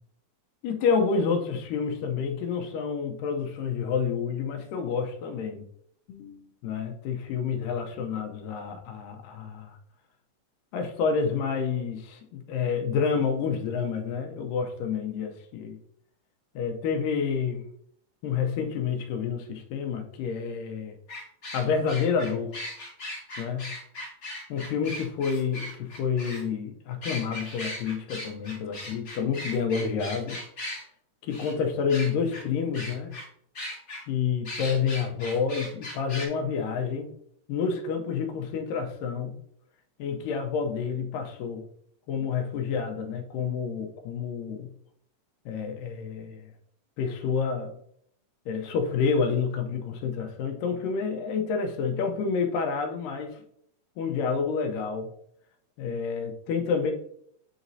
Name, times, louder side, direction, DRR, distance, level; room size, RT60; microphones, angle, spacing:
voice 1, 0.6-5.6 6.1-9.8 10.7-15.8 16.6-17.6 18.2-21.0 21.5-22.5 23.4-23.7 24.5-30.4 31.2-33.2 34.1-37.1 37.5-39.4 40.0-41.6 42.1-44.7 45.5-46.5 47.0-47.8 48.5-53.4 54.0-55.1 55.8-56.9, left 6 dB, 85° left, 2.3 m, -29 dB
sound 1, 21.1-26.4 27.0-30.8 31.3-31.5 31.9-32.4 32.7-33.2 33.5-34.0 34.4-36.3, left 1 dB, 45° left, 1.2 m, -38 dB
9.3 x 4.0 x 2.6 m
omnidirectional pair, 3.9 m